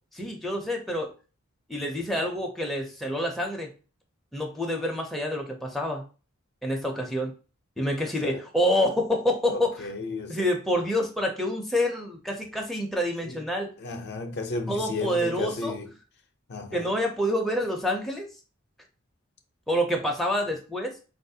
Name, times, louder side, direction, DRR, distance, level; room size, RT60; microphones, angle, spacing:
voice 1, 0.1-1.1 1.7-3.7 4.3-6.0 6.6-7.3 7.8-9.9 10.3-13.7 14.7-15.7 16.7-18.3 19.7-20.9, equal, ahead, 0.4 m, -27 dB
voice 2, 8.0-8.4 9.5-10.5 13.2-13.5 13.8-15.9 16.5-16.9, left 3 dB, 55° left, 0.5 m, -34 dB
4.0 x 2.4 x 2.6 m
head